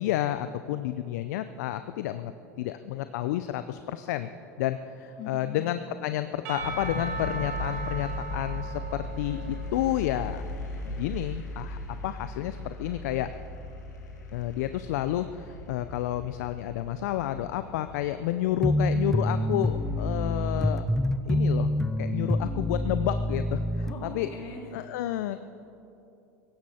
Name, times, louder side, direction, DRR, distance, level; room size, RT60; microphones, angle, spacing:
voice 1, 0.0-4.3 4.6-10.5 10.8-13.3 14.3-20.8 21.2-21.7 22.0-24.3 24.7-25.4, left 13 dB, 70° left, 11 dB, 0.5 m, -30 dB
voice 2, 5.2-5.6 23.8-24.7, left 3 dB, 50° left, -1 dB, 3.8 m, -41 dB
Percussion / Church bell, 6.4-10.4, right 3 dB, 65° right, 3.1 m, -38 dB
sound 1, 6.6-20.4, left 2 dB, 90° left, 1.9 m, -38 dB
sound 2, 18.6-23.9, left 1 dB, 5° left, 0.7 m, -26 dB
17.0 x 15.5 x 4.3 m, 2.7 s
hypercardioid pair, 90°, 9 cm